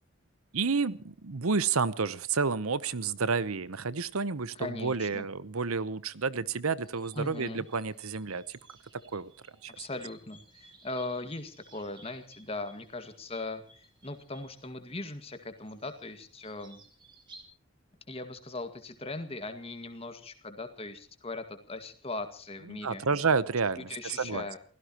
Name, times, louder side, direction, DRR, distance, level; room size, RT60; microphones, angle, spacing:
voice 1, 0.5-8.6 9.1-9.3 9.6-9.9 22.7-24.4, right 4 dB, 80° right, 16 dB, 0.9 m, -30 dB
voice 2, 4.6-5.3 7.1-7.7 9.8-16.8 18.1-23.0 23.7-24.6, left 2 dB, 25° left, 8 dB, 2.0 m, -39 dB
sound 1, 6.8-17.4, right 2 dB, 20° right, 2.8 m, -58 dB
28.5 x 16.5 x 3.0 m, 0.41 s
head